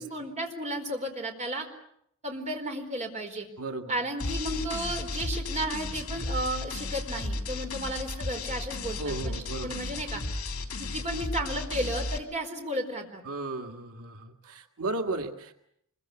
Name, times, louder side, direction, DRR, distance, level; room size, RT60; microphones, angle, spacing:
voice 1, 0.0-1.7 2.2-3.5 3.9-10.2 10.8-13.2, right 1 dB, 30° right, 3 dB, 4.6 m, -33 dB
voice 2, 3.6-4.0 9.0-9.8 13.2-15.5, right 2 dB, 90° right, 4 dB, 1.9 m, -35 dB
sound 1, 4.2-12.2, left 2 dB, 70° left, 3.1 m, -34 dB
25.5 x 23.0 x 8.4 m, 0.73 s
head